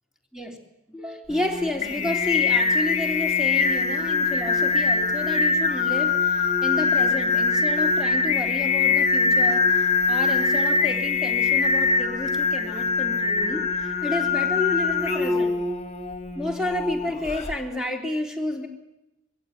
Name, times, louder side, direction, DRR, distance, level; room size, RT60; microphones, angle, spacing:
voice 1, 0.9-6.2 6.6-9.7 10.1-15.5 16.3-18.7, left 1 dB, 5° right, 2 dB, 3.1 m, -30 dB
Singing, 1.3-17.6, left 4 dB, 30° left, 2.0 m, -23 dB
22.0 x 15.5 x 9.5 m, 0.91 s
head